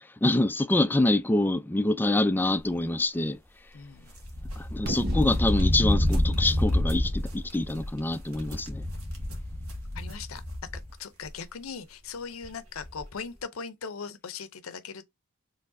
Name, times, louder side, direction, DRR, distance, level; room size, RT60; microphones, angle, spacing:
voice 1, 0.2-3.4 4.6-8.8, left 2 dB, 10° left, 0.4 m, -26 dB
voice 2, 3.7-4.1 9.9-10.4 11.0-15.0, left 5 dB, 70° left, 0.6 m, -39 dB
sound 1, 4.2-10.9 11.2-11.3 12.4-12.5 12.8-13.0, left 1 dB, 85° right, 1.6 m, -28 dB
Fireworks, 4.9-8.7, right 1 dB, 50° right, 1.0 m, -41 dB
4.7 x 3.3 x 2.6 m
head